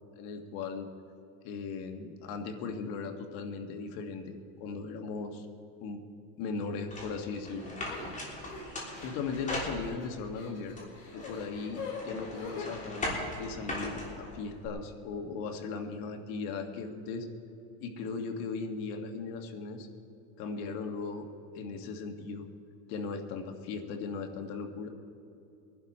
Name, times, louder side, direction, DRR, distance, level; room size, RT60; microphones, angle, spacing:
voice 1, 0.2-0.9 1.4-5.5 5.8-6.0 6.4-7.7 9.0-10.8 11.1-17.3 17.8-19.9 20.4-21.3 21.5-22.5 22.9-24.9, left 4 dB, 65° left, 5 dB, 1.7 m, -38 dB
sound 1, 6.9-10.3 10.8-14.7, left 1 dB, 20° left, 3.3 m, -39 dB
sound 2, 7.9-12.9, left 5 dB, 80° left, 3.8 m, -44 dB
23.0 x 11.5 x 4.3 m, 2.8 s
supercardioid pair, 130°, 40 cm